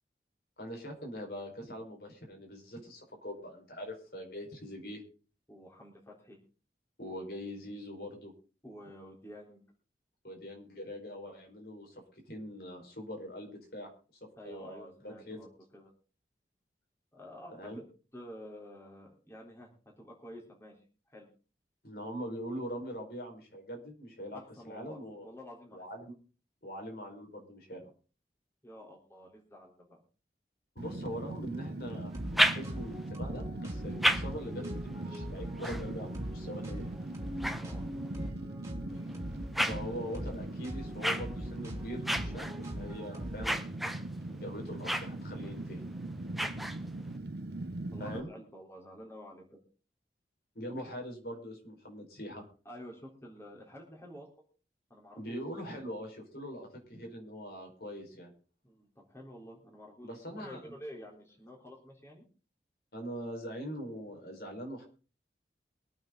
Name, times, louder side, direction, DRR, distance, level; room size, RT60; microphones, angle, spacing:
voice 1, 0.6-5.0 7.0-8.3 10.2-12.0 12.3-13.9 14.2-15.4 17.5-17.8 21.8-24.4 24.6-25.3 25.7-26.1 26.6-27.9 30.7-37.1 39.6-43.7 44.3-45.8 48.0-48.3 50.5-52.4 55.2-58.3 60.0-60.7 62.9-64.8, equal, 60° left, 1 dB, 4.9 m, -42 dB
voice 2, 5.5-6.4 8.6-9.6 14.4-15.5 15.7-15.9 17.1-17.8 18.1-19.7 20.0-21.3 24.3-25.8 28.6-30.0 37.5-38.3 47.9-49.6 52.7-54.3 54.9-55.4 58.6-62.3, equal, 15° left, -1 dB, 3.8 m, -50 dB
Fire, 30.8-48.2, right 2 dB, 70° right, 0.9 m, -41 dB
sound 1, 32.1-33.1 33.7-38.3 38.9-47.2, right 1 dB, ahead, 0.9 m, -36 dB
sound 2, 32.1-43.5, equal, 15° right, 3.2 m, -42 dB
23.5 x 8.9 x 3.9 m, 0.37 s
head